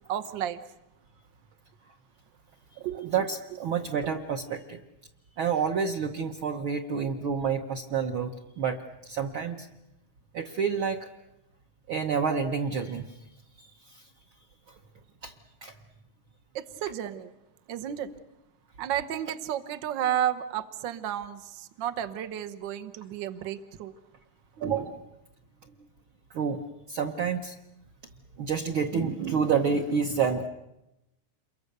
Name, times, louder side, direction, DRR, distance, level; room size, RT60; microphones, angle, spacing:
voice 1, 0.1-0.6 2.8-3.1 16.5-17.3 17.7-18.1 18.8-23.9, right 11 dB, 85° right, 10 dB, 1.0 m, -32 dB
voice 2, 3.0-4.8 5.4-9.7 10.3-11.1 11.9-13.2 13.6-14.0 15.2-15.3 15.6-15.7 16.8-16.9 24.6-25.0 26.3-26.6 26.9-27.5 28.4-30.5, right 6 dB, 65° right, 3 dB, 1.3 m, -29 dB
28.5 x 23.0 x 6.7 m, 0.91 s
omnidirectional pair, 3.6 m